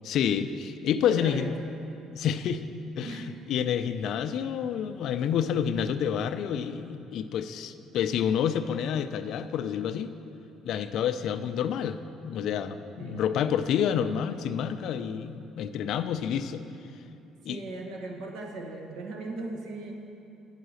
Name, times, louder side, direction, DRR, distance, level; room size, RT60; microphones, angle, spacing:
voice 1, 0.0-1.5 2.1-2.6 3.0-3.2 3.5-10.1 10.7-12.0 12.2-16.6 17.4-17.6, left 8 dB, 60° left, 10 dB, 0.4 m, -28 dB
voice 2, 1.0-1.5 3.0-3.3 13.0-13.3 17.4-19.9, right 2 dB, 70° right, 2 dB, 1.1 m, -38 dB
9.1 x 5.6 x 6.4 m, 2.8 s
cardioid pair, 150°, 0 cm